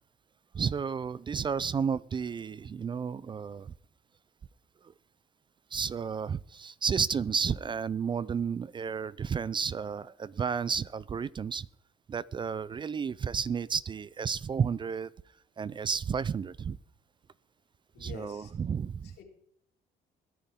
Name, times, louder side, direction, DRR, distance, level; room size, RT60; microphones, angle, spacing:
voice 1, 0.5-3.7 5.7-11.7 12.1-15.1 15.6-16.8 18.0-19.1, right 6 dB, 30° right, 21 dB, 0.4 m, -32 dB
voice 2, 17.9-18.5 19.0-19.2, left 6 dB, 75° left, 1 dB, 4.0 m, -47 dB
22.0 x 10.0 x 3.7 m, 0.69 s
cardioid pair, 110°, 17 cm